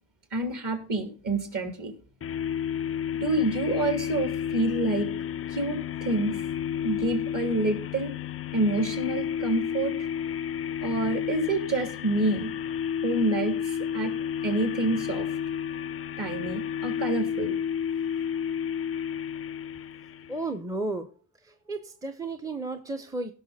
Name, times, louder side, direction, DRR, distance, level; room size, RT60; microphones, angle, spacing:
voice 1, 0.3-1.9 3.2-5.1 5.5-6.4 6.8-8.1 8.5-9.9 10.8-12.5 13.0-13.6 13.9-14.1 14.4-15.3 16.2-17.5, right 2 dB, 40° right, 5 dB, 3.2 m, -27 dB
sound 1, 2.2-20.5, left 8 dB, 30° left, 0.4 m, -31 dB
voice 2, 20.3-21.1 21.4-23.3, right 2 dB, 5° right, 8 dB, 0.7 m, -33 dB
17.0 x 6.0 x 4.2 m, 0.39 s
cardioid pair, 90°, 46 cm